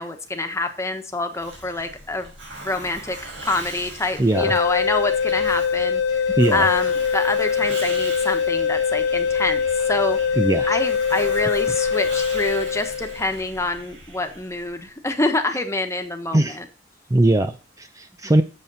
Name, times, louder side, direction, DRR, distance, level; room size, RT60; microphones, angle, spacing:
voice 1, 0.0-2.3 2.6-6.2 6.5-9.6 9.9-10.2 10.7-16.6, left 2 dB, 15° left, 6 dB, 1.3 m, -26 dB
Hiss, 1.3-14.8, right 2 dB, 80° right, 5.0 m, -40 dB
voice 2, 4.2-4.6 6.4-6.7 10.4-10.8 16.3-16.6 17.1-18.4, right 1 dB, 20° right, 9 dB, 0.5 m, -20 dB
sound 1, 4.3-13.3, left 6 dB, 85° left, 1.0 m, -23 dB
8.3 x 7.3 x 5.6 m, 0.37 s
head